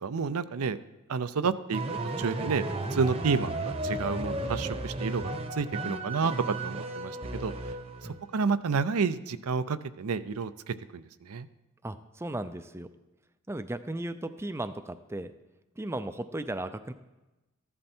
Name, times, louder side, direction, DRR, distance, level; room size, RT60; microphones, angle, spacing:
voice 1, 0.0-0.8 1.1-1.8 2.2-2.6 2.9-7.5 8.0-11.5, right 5 dB, 85° right, 13 dB, 0.5 m, -30 dB
sound 1, 1.7-8.2, right 2 dB, 25° right, 0.8 m, -34 dB
voice 2, 11.8-12.9 13.5-15.3 15.8-16.9, right 1 dB, 10° right, 11 dB, 0.4 m, -36 dB
14.5 x 11.0 x 4.4 m, 1.0 s
head